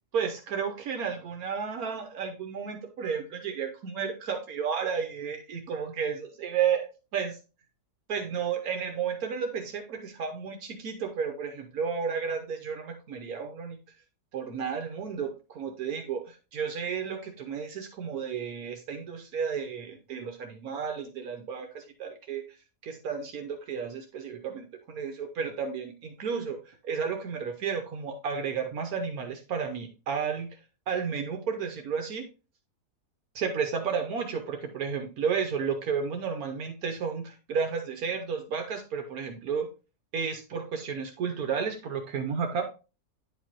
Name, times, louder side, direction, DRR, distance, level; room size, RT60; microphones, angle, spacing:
voice 1, 0.1-6.9 7.1-7.4 8.1-13.8 14.3-22.4 22.8-30.5 30.9-32.2 33.3-39.7 40.1-42.6, right 6 dB, 70° right, 5 dB, 1.3 m, -32 dB
9.6 x 5.2 x 2.9 m, 0.32 s
omnidirectional pair, 1.6 m